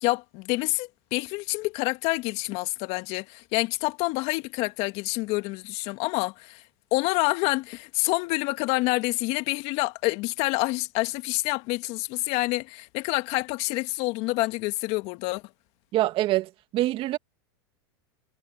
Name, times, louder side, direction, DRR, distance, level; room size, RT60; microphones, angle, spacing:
voice 1, 0.0-6.6 6.9-15.4, left 23 dB, 55° left, 1.9 m, -27 dB
voice 2, 15.9-17.2, right 16 dB, 45° right, 2.4 m, -25 dB
hypercardioid pair, 100°, 13 cm